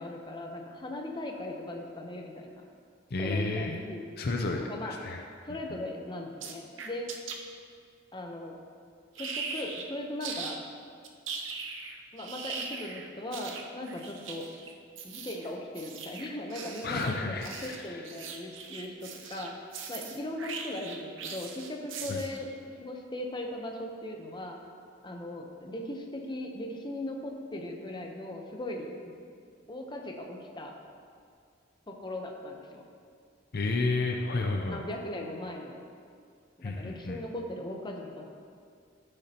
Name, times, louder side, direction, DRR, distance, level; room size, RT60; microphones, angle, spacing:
voice 1, 0.0-2.7 3.2-4.1 4.6-5.0 5.5-7.1 8.1-8.6 9.2-10.6 12.1-14.5 15.0-19.6 19.9-22.5 22.8-24.6 25.0-29.1 29.7-30.7 31.9-32.8 34.0-34.1 34.7-35.8 36.6-38.3, left 1 dB, 25° left, 1 dB, 0.9 m, -38 dB
voice 2, 3.1-3.8 4.2-5.2 5.7-5.8 16.8-18.0 22.1-22.2 33.5-34.8 36.6-37.2, left 3 dB, 55° left, 2 dB, 0.6 m, -31 dB
sound 1, 6.4-7.3 9.1-9.9 10.2-10.6 11.0-22.5, right 5 dB, 85° right, 0.8 m, -40 dB
13.5 x 6.6 x 2.9 m, 2.2 s
head